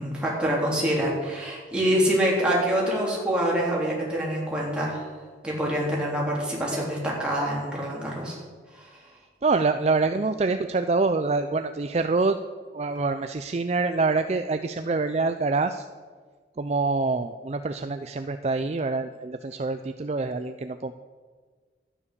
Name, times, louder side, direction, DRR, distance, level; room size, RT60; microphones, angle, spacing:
voice 1, 0.0-5.0 5.4-8.4 8.7-8.9, equal, 5° right, -5 dB, 3.5 m, -26 dB
voice 2, 9.4-12.4 12.7-15.9 16.6-20.9, right 3 dB, 35° right, 9 dB, 0.4 m, -25 dB
12.0 x 9.9 x 6.8 m, 1.5 s
head